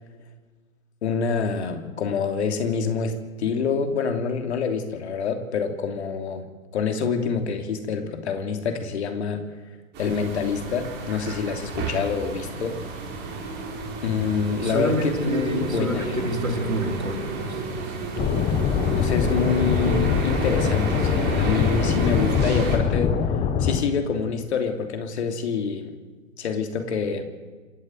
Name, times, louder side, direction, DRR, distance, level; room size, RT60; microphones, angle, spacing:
voice 1, 1.0-9.4 10.0-12.8 14.0-16.2 18.9-23.2 23.6-25.9 26.4-27.2, left 5 dB, 55° left, 6 dB, 3.2 m, -26 dB
sound 1, 9.9-22.8, right 3 dB, 25° right, 4.7 m, -31 dB
voice 2, 14.6-17.6, right 1 dB, 85° right, 3 dB, 4.5 m, -28 dB
sound 2, 18.2-23.8, left 7 dB, 15° left, 1.3 m, -23 dB
27.0 x 11.5 x 9.4 m, 1.3 s
figure-of-eight pair, 120°, 40 cm